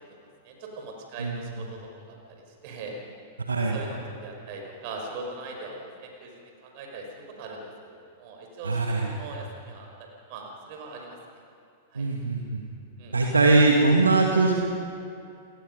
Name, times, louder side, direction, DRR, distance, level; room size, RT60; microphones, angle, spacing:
voice 1, 0.4-2.9 3.7-7.1 7.4-11.2 11.9-12.1 13.0-13.2, right 3 dB, 45° right, 1 dB, 5.2 m, -41 dB
voice 2, 8.6-9.1 12.0-12.6 13.1-14.5, right 3 dB, 80° right, 1 dB, 1.9 m, -21 dB
28.5 x 19.0 x 5.4 m, 2.5 s
figure-of-eight pair, 100°, 0 cm